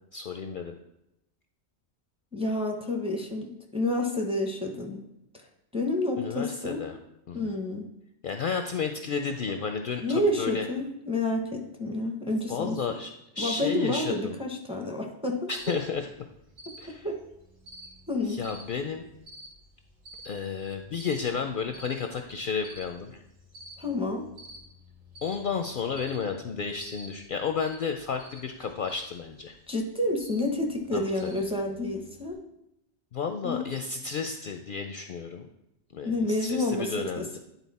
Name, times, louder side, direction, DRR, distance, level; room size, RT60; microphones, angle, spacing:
voice 1, 0.1-0.8 6.2-7.0 7.3-7.5 8.2-10.7 12.5-14.4 15.5-16.1 16.8-17.1 18.3-19.0 20.2-23.2 25.2-29.6 30.9-31.3 33.1-35.4 35.9-37.4, left 6 dB, 60° left, 5 dB, 0.6 m, -32 dB
voice 2, 2.3-5.0 5.3-5.4 5.7-6.8 7.3-7.9 10.0-12.8 13.4-15.7 16.7-17.2 18.1-18.4 23.8-24.3 29.7-32.4 33.4-33.7 36.0-37.4, left 2 dB, 5° right, 2 dB, 0.8 m, -29 dB
Cricket, 15.6-32.3, equal, 75° right, 2.0 m, -51 dB
9.9 x 4.0 x 4.1 m, 0.85 s
omnidirectional pair, 1.2 m